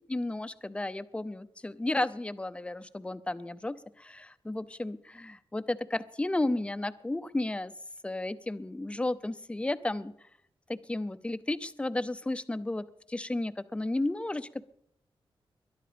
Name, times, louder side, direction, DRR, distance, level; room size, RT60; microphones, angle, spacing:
voice 1, 0.1-7.7 8.0-10.1 10.7-14.6, left 2 dB, 10° left, 13 dB, 0.7 m, -33 dB
21.0 x 11.0 x 5.1 m, 0.71 s
wide cardioid pair, 120°, 9 cm